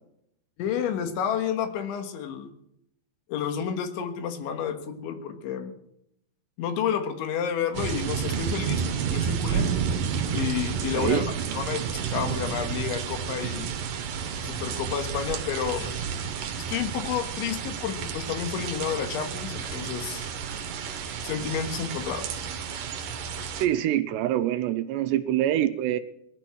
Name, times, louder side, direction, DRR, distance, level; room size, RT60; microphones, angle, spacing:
voice 1, 0.6-2.5 3.3-5.7 6.6-9.7 10.3-11.2 11.5-13.7 14.4-16.0 16.7-20.3 21.2-22.3, left 8 dB, 80° left, 7 dB, 3.9 m, -30 dB
sound 1, 7.7-23.7, right 7 dB, 65° right, 2.3 m, -31 dB
voice 2, 10.9-11.3 23.5-26.0, right 12 dB, 80° right, 11 dB, 2.7 m, -25 dB
sound 2, 14.8-20.2, left 3 dB, 50° left, 5.1 m, -52 dB
19.0 x 12.0 x 6.2 m, 0.77 s
omnidirectional pair, 5.3 m